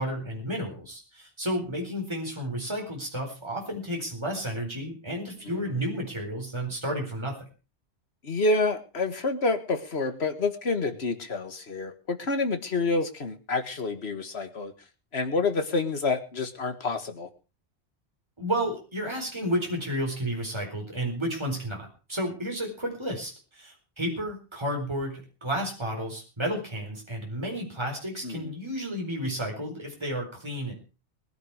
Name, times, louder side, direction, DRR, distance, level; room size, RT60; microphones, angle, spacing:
voice 1, 0.0-7.4 18.4-30.7, equal, 25° right, 0 dB, 4.5 m, -32 dB
voice 2, 5.5-5.8 8.2-14.7 15.1-17.3 28.2-28.5, left 3 dB, 75° left, 8 dB, 1.9 m, -28 dB
20.5 x 10.5 x 4.9 m, 0.34 s
omnidirectional pair, 1.1 m